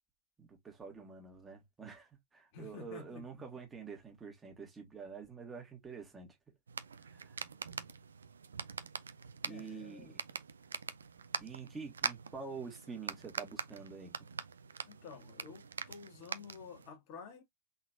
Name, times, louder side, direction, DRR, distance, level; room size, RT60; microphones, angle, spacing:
voice 1, 0.4-6.3 7.0-7.4 9.4-10.2 11.4-14.1, right 5 dB, 15° right, 1.8 m, -47 dB
voice 2, 2.5-3.2 9.5-10.1 14.9-17.4, left 5 dB, 45° left, 1.5 m, -50 dB
sound 1, 6.7-16.9, right 6 dB, 70° right, 0.4 m, -44 dB
4.0 x 3.8 x 2.4 m
figure-of-eight pair, 90°, 0 cm